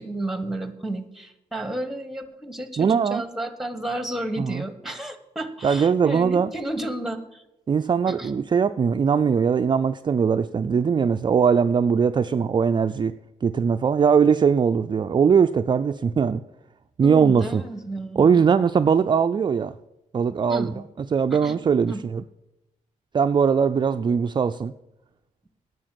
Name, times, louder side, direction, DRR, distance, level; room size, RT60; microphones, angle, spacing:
voice 1, 0.0-7.4 8.1-8.3 17.0-18.5 20.5-20.8 21.3-21.6 21.9-22.0, right 1 dB, ahead, 11 dB, 1.3 m, -32 dB
voice 2, 2.8-3.2 4.4-4.6 5.6-6.5 7.7-13.1 13.4-16.4 17.0-17.6 18.2-19.7 20.1-20.7 21.1-22.2 23.1-24.7, right 6 dB, 35° right, 8 dB, 0.4 m, -20 dB
9.8 x 8.0 x 7.5 m, 0.91 s
cardioid pair, 85°, 14 cm